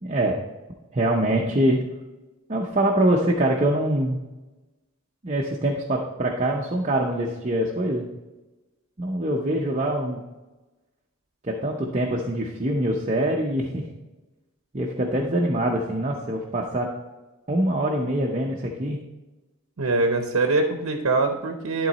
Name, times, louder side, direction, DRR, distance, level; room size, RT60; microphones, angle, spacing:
voice 1, 0.0-0.4 0.9-1.8 2.5-4.2 5.2-8.1 9.0-10.2 11.4-13.8 14.7-16.9 17.5-19.0, right 1 dB, 30° right, 0 dB, 0.6 m, -24 dB
voice 2, 19.8-21.9, right 3 dB, 75° right, 5 dB, 0.7 m, -23 dB
11.5 x 3.9 x 4.0 m, 1.1 s
head